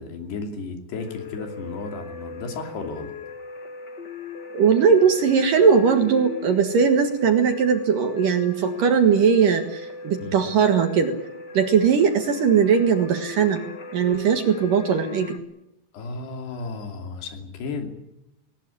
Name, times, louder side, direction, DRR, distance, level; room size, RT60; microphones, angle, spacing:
voice 1, 0.0-3.1 10.2-10.4 15.9-17.9, left 4 dB, 65° left, 5 dB, 4.8 m, -34 dB
sound 1, 1.0-15.4, left 4 dB, 85° left, 0.9 m, -38 dB
voice 2, 4.5-11.1 11.5-13.6 13.9-15.4, right 6 dB, 60° right, 6 dB, 2.8 m, -19 dB
19.5 x 19.0 x 9.9 m, 0.85 s
omnidirectional pair, 5.1 m